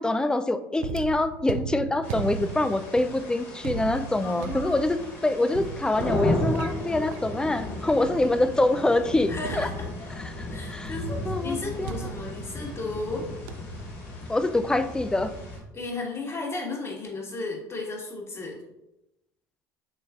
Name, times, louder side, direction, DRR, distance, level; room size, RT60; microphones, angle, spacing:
voice 1, 0.0-9.7 10.2-10.9 11.3-11.9 14.3-15.3, left 2 dB, 10° left, 10 dB, 0.3 m, -25 dB
sound 1, 0.8-8.7 9.4-10.4 11.9-13.1 13.5-13.8, right 8 dB, 70° right, 0.4 m, -38 dB
sound 2, 2.0-15.6, left 1 dB, 60° left, 1.5 m, -34 dB
voice 2, 4.2-5.6 9.3-10.1 10.5-13.2 15.7-18.6, left 3 dB, 25° left, 0 dB, 1.4 m, -35 dB
6.9 x 3.2 x 2.4 m, 0.88 s
hypercardioid pair, 70°, 10 cm